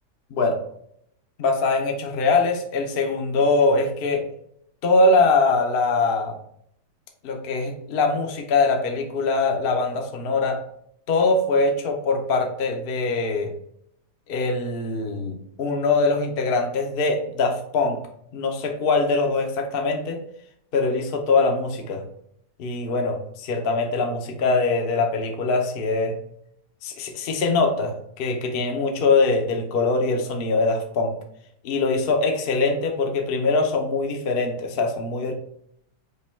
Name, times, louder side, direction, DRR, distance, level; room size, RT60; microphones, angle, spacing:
voice 1, 1.4-4.2 4.8-6.4 7.2-10.6 11.1-13.5 14.3-18.0 18.3-20.2 20.7-22.0 22.6-26.1 26.8-31.2 31.6-35.3, left 3 dB, 55° left, 3 dB, 0.6 m, -22 dB
5.2 x 2.3 x 4.2 m, 0.71 s
omnidirectional pair, 1.8 m